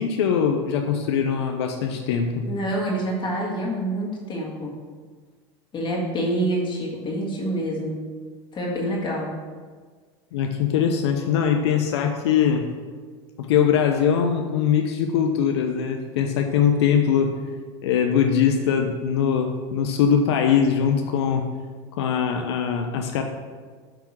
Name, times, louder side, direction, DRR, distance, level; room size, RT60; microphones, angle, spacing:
voice 1, 0.0-2.5 10.3-12.7 13.4-17.4 17.8-21.5 22.0-23.2, left 7 dB, 75° left, 4 dB, 0.6 m, -22 dB
voice 2, 2.5-4.8 5.7-8.0 8.5-9.3, right 1 dB, 35° left, -3 dB, 1.8 m, -27 dB
7.7 x 3.5 x 6.0 m, 1.5 s
hypercardioid pair, 85°, 14 cm